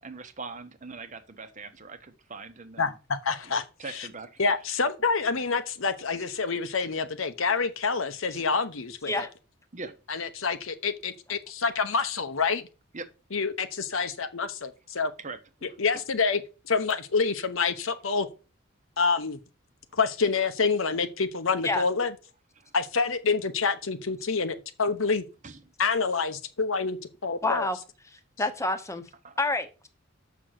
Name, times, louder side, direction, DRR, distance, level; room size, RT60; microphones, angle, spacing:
voice 1, 0.0-2.9 3.8-4.4 4.7-4.8 9.7-9.9 12.9-13.1 15.2-15.8 22.6-22.7 25.4-25.6 29.2-29.4, right 4 dB, 35° right, 1.0 m, -41 dB
voice 2, 2.8-4.1 4.4-9.3 10.1-12.7 13.3-15.1 15.6-16.4 16.7-18.3 19.0-19.4 19.9-22.1 22.7-25.2 25.8-27.7, left 4 dB, 70° left, 1.0 m, -27 dB
voice 3, 27.4-27.8 28.4-29.0 29.4-29.9, left 2 dB, 15° left, 1.1 m, -27 dB
7.3 x 6.0 x 6.5 m
head